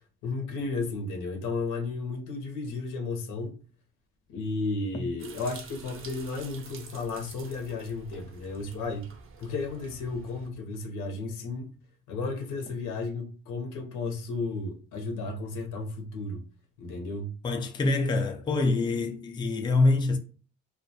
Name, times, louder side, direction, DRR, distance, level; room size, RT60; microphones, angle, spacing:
voice 1, 0.2-3.6 4.3-9.1 9.4-11.7 12.1-16.4 16.8-17.3, left 3 dB, 85° left, 0.7 m, -33 dB
sound 1, 5.2-10.5, right 5 dB, 45° right, 0.5 m, -48 dB
voice 2, 17.4-20.2, left 3 dB, 15° left, 0.3 m, -25 dB
2.2 x 2.2 x 2.6 m
cardioid pair, 90°, 30 cm